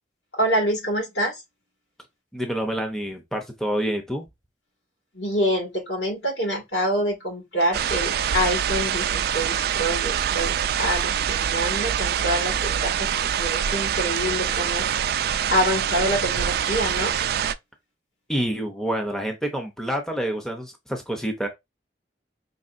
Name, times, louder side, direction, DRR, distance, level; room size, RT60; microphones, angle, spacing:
voice 1, 0.3-1.4 5.1-10.5 10.8-14.8 15.5-17.2, equal, 65° left, 2.1 m, -26 dB
voice 2, 2.3-4.3 18.3-21.5, equal, 5° left, 0.6 m, -27 dB
sound 1, 7.7-17.5, right 9 dB, 55° right, 0.3 m, -25 dB
5.4 x 3.3 x 2.5 m
head